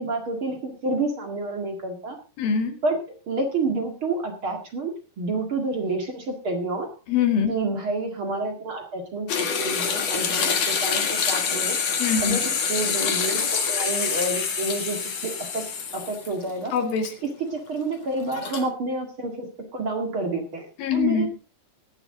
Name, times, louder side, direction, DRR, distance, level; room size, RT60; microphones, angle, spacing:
voice 1, 0.0-2.2 2.8-3.0 3.3-6.9 7.5-11.8 12.2-15.7 15.9-16.7 17.5-20.7 20.9-21.3, right 3 dB, 40° right, 4 dB, 2.4 m, -29 dB
voice 2, 2.4-2.8 7.1-7.5 12.0-12.4 16.7-17.1 20.8-21.3, left 7 dB, 80° left, 6 dB, 3.8 m, -23 dB
sound 1, 9.3-16.5 16.9-17.0 18.2-18.7, left 6 dB, 50° left, 3.0 m, -26 dB
17.0 x 11.0 x 3.8 m, 0.34 s
omnidirectional pair, 4.1 m